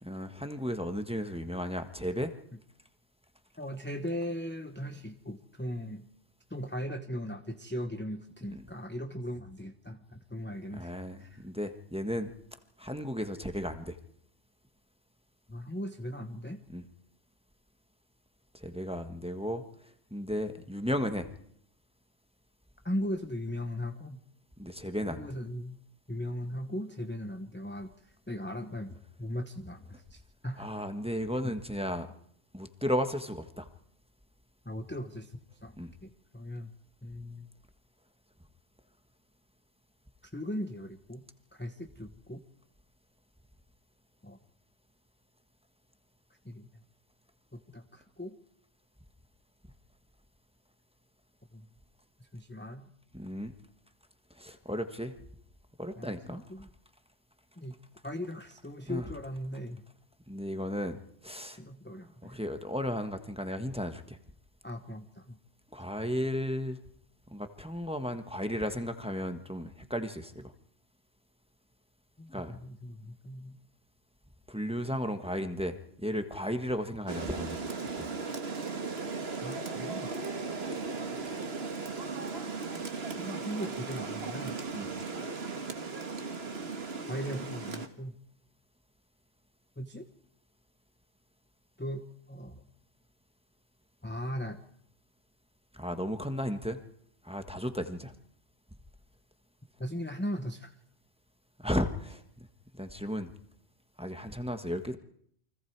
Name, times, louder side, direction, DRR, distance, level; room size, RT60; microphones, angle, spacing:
voice 1, 0.0-2.3 8.5-8.6 10.7-12.3 12.8-14.0 16.7-16.9 18.5-21.3 24.6-25.3 30.6-32.1 32.5-33.7 35.8-35.9 53.1-53.5 54.3-55.2 55.8-56.7 58.9-59.1 60.3-61.6 62.2-64.2 65.7-66.8 67.3-70.5 72.3-72.5 74.5-78.1 84.7-84.9 95.7-96.8 97.2-98.1 101.6-102.5 102.7-103.3 104.0-105.0, equal, 5° right, 7 dB, 1.4 m, -34 dB
voice 2, 3.6-6.1 6.5-10.9 11.2-11.4 15.5-16.6 22.8-24.2 25.1-25.8 26.1-30.7 31.4-31.5 34.6-35.3 35.6-36.7 37.0-37.5 40.3-41.2 41.5-42.4 44.2-44.4 46.4-46.7 47.5-48.4 51.5-51.7 52.2-52.9 56.0-56.7 57.6-57.8 58.0-59.8 61.5-62.4 64.6-65.4 72.2-73.6 79.4-80.1 83.1-84.6 87.1-88.1 89.8-90.1 91.8-92.6 94.0-94.6 99.8-100.7, equal, 10° left, 6 dB, 1.0 m, -38 dB
Rain, 77.1-87.9, right 4 dB, 60° right, 1.8 m, -37 dB
29.5 x 24.5 x 4.7 m, 0.67 s
omnidirectional pair, 1.2 m